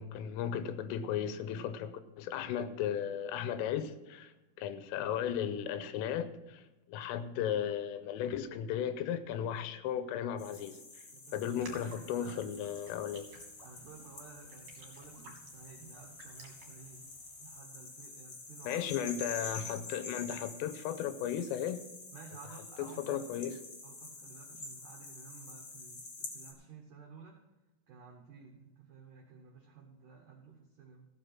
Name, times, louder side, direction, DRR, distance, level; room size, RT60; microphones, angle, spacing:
voice 1, 0.0-6.6 6.9-10.8 11.3-13.3 18.7-21.8 22.8-23.6, left 9 dB, 90° left, 3.3 m, -35 dB
sound 1, 10.4-26.5, left 3 dB, 70° left, 1.1 m, -48 dB
voice 2, 11.1-12.4 13.6-17.1 17.4-18.9 22.1-23.2 23.8-27.4 27.9-31.1, right 5 dB, 80° right, 1.8 m, -53 dB
Raindrop, 11.3-17.6, right 3 dB, 50° right, 2.1 m, -57 dB
15.5 x 6.6 x 5.9 m
omnidirectional pair, 5.9 m